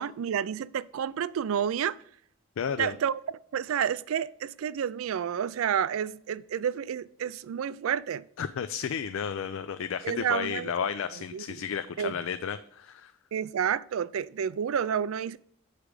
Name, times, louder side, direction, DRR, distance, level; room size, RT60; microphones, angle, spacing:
voice 1, 0.0-2.0 2.8-3.2 3.5-8.2 10.0-10.7 11.3-11.4 12.0-12.1 13.3-15.4, right 8 dB, 85° right, 0.3 m, -30 dB
voice 2, 2.6-3.0 8.4-13.1, left 7 dB, 75° left, 0.4 m, -32 dB
6.7 x 5.0 x 4.8 m
head